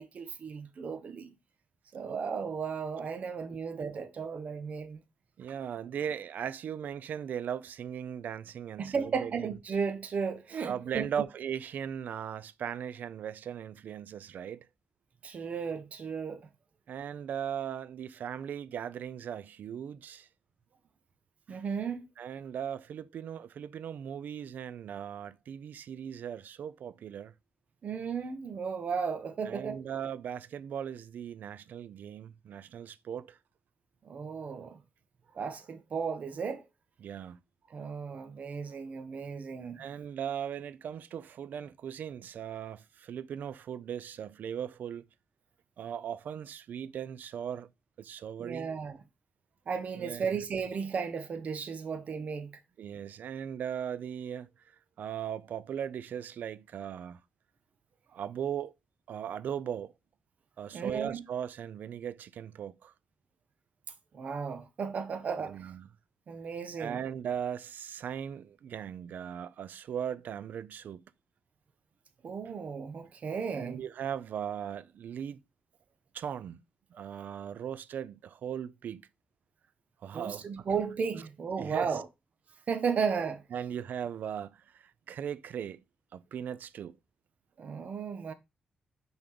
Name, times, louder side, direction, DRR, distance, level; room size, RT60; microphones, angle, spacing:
voice 1, 0.0-1.3 1.9-5.0 8.8-11.1 15.2-16.4 21.5-22.0 27.8-29.9 34.0-34.8 35.3-36.6 37.7-39.8 48.4-49.0 49.7-52.6 60.7-61.2 64.1-65.7 66.3-67.0 72.2-73.8 80.1-82.0 82.7-83.4 87.6-88.3, right 6 dB, 55° right, 1.5 m, -34 dB
voice 2, 5.4-9.5 10.7-14.7 16.9-20.3 22.2-27.3 29.4-33.4 37.0-37.4 39.7-45.1 45.8-47.7 48.0-48.7 50.0-50.3 52.8-57.2 58.1-58.7 59.1-59.9 60.6-62.9 65.4-65.9 66.8-71.0 73.5-75.4 76.1-76.6 77.0-79.0 80.0-80.7 81.6-82.0 83.5-85.8 86.1-87.0, right 8 dB, 75° right, 0.6 m, -38 dB
6.1 x 5.2 x 6.8 m
wide cardioid pair, 125°, 3 cm